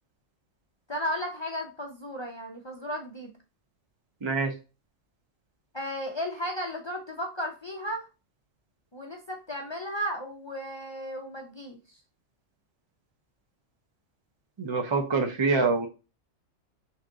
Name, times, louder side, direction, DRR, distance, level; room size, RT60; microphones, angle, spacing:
voice 1, 0.9-3.3 5.7-8.0 8.9-11.8, equal, 45° left, 1 dB, 0.3 m, -34 dB
voice 2, 14.6-15.9, right 4 dB, 40° right, 4 dB, 0.4 m, -25 dB
3.6 x 3.0 x 3.7 m, 0.31 s
omnidirectional pair, 1.4 m